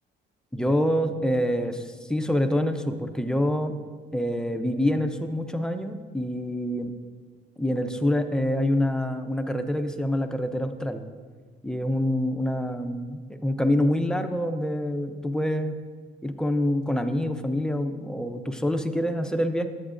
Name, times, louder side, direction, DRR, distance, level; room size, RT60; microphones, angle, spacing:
voice 1, 0.5-3.8 4.1-6.9 7.6-11.0 11.6-15.8 16.2-19.7, left 1 dB, 5° left, 7 dB, 0.5 m, -26 dB
10.5 x 7.9 x 2.5 m, 1.5 s
cardioid pair, 90°, 20 cm